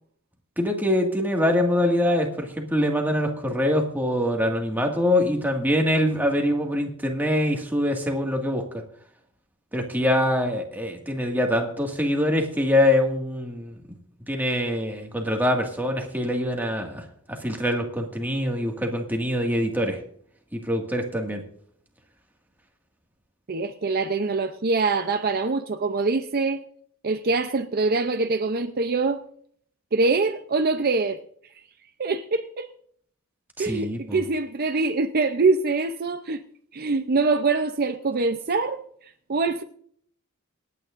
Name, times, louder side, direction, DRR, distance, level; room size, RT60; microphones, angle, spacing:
voice 1, 0.6-8.6 9.7-13.8 14.3-17.0 17.3-20.0 20.5-21.4 33.6-34.2, left 1 dB, 10° right, 1.9 m, -24 dB
voice 2, 23.5-26.6 27.0-29.2 29.9-31.2 32.0-32.7 33.6-36.4 36.7-39.6, right 3 dB, 45° right, 0.6 m, -24 dB
27.5 x 9.3 x 2.6 m
head